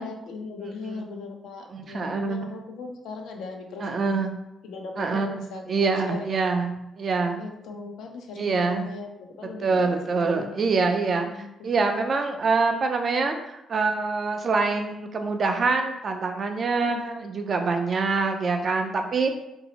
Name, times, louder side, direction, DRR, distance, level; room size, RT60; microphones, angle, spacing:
voice 1, 0.0-3.9 4.6-6.4 7.4-10.7 11.2-11.5 11.7-11.9 16.8-17.1, left 3 dB, 85° left, 3 dB, 0.4 m, -38 dB
voice 2, 1.7-2.4 3.8-4.3 5.0-5.3 5.7-7.4 8.4-8.9 9.6-19.3, right 4 dB, 50° right, 5 dB, 0.4 m, -25 dB
2.6 x 2.0 x 2.8 m, 0.86 s
cardioid pair, 85°, 0 cm